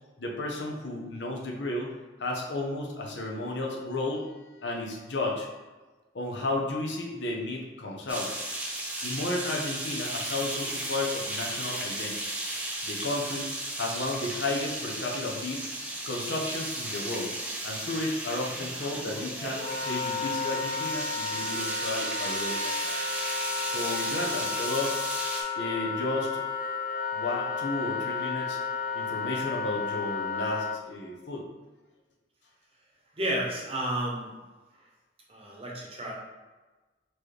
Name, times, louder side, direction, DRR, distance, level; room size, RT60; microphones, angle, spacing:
voice 1, 0.2-1.9 2.2-5.5 6.1-8.3 9.0-12.1 12.8-13.5 13.8-15.6 16.0-17.3 17.6-22.9 23.6-25.0 25.5-26.3 27.1-28.6 28.9-31.5, left 2 dB, 85° left, 0 dB, 0.8 m, -33 dB
sound 1, 8.1-25.4, right 1 dB, 10° right, 0.5 m, -35 dB
Wind instrument woodwind instrument, 19.5-30.8, left 5 dB, 50° left, 0.3 m, -32 dB
voice 2, 33.2-34.3 35.3-36.1, right 1 dB, 35° right, -2 dB, 0.8 m, -31 dB
4.3 x 3.1 x 3.3 m, 1.2 s
head